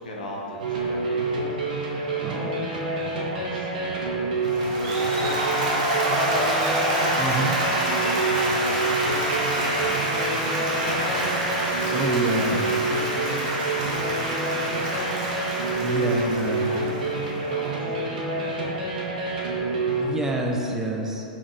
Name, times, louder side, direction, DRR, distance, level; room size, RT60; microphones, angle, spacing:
voice 1, 0.0-20.1, left 1 dB, 75° left, -2 dB, 0.6 m, -40 dB
sound 1, 0.6-20.0, right 3 dB, 70° right, 0.6 m, -28 dB
voice 2, 2.2-2.6 7.2-7.5 11.9-12.7 15.8-16.8 19.9-21.2, right 2 dB, 10° right, -1 dB, 0.4 m, -28 dB
Applause, 4.4-17.6, right 1 dB, 55° right, 0.9 m, -27 dB
sound 2, 9.5-15.3, left 1 dB, 55° left, 1.1 m, -42 dB
3.6 x 2.4 x 3.8 m, 2.8 s
figure-of-eight pair, 100°, 5 cm